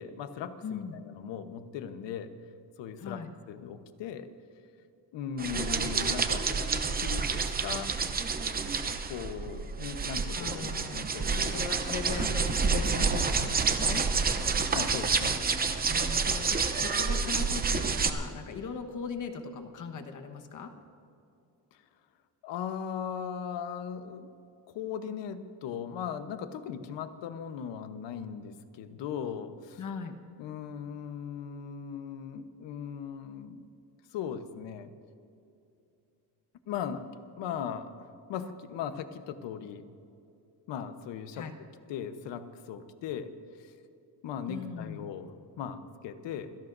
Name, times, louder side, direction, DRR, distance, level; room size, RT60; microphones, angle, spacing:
voice 1, 0.0-2.3 2.8-4.3 5.1-8.0 8.8-11.6 12.2-12.3 14.7-15.4 22.4-24.3 24.7-29.8 30.4-33.6 34.1-34.9 36.7-37.1 37.4-39.9 40.7-41.5 41.9-43.3 43.6-43.7 44.2-46.6, left 8 dB, 90° left, 9 dB, 1.1 m, -38 dB
voice 2, 0.6-1.0 3.0-3.3 10.3-11.1 11.5-14.1 15.9-20.7 29.8-30.1 41.3-41.6 44.5-45.1, left 5 dB, 45° left, 5 dB, 1.3 m, -39 dB
sound 1, 5.4-18.1, right 5 dB, 20° right, 0.7 m, -29 dB
sound 2, 11.1-18.1, left 1 dB, 10° left, 1.6 m, -47 dB
27.5 x 17.0 x 2.7 m, 2.6 s
cardioid pair, 175°, 42 cm